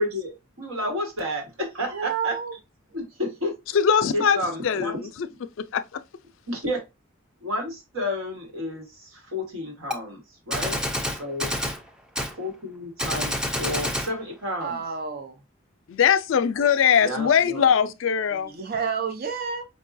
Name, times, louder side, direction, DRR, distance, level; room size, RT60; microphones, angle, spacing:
voice 1, 0.0-2.3 2.9-3.5 4.1-5.0 6.5-6.8 7.4-10.8 11.1-11.5 12.3-14.8 17.0-17.6, left 1 dB, 80° right, 1.4 m, -31 dB
voice 2, 1.9-2.6 14.6-15.4 18.3-19.6, right 6 dB, 45° right, 0.6 m, -30 dB
voice 3, 3.7-6.0 15.9-18.5, left 7 dB, 65° left, 0.4 m, -22 dB
Gunshot gunfire, 9.9-10.0 10.5-11.8 12.2-12.3 13.0-14.1, equal, 5° right, 0.4 m, -28 dB
5.2 x 2.2 x 2.5 m
head